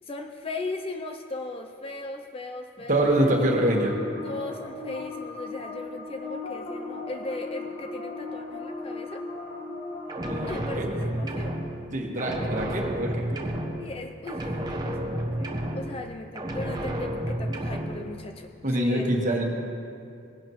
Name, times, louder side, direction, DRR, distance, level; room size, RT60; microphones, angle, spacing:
voice 1, 0.0-3.6 4.2-9.2 10.5-11.6 12.4-12.5 13.8-19.3, left 2 dB, 25° left, 5 dB, 0.4 m, -37 dB
voice 2, 2.9-3.9 10.2-11.0 11.9-13.6 18.6-19.4, right 1 dB, 35° right, 0 dB, 1.4 m, -25 dB
sound 1, 3.0-10.4, left 3 dB, 45° left, 1.6 m, -37 dB
sound 2, 10.1-11.9 12.2-14.0 14.3-16.1 16.4-18.0, right 1 dB, 20° right, 0.8 m, -31 dB
18.5 x 11.0 x 3.1 m, 2.5 s
head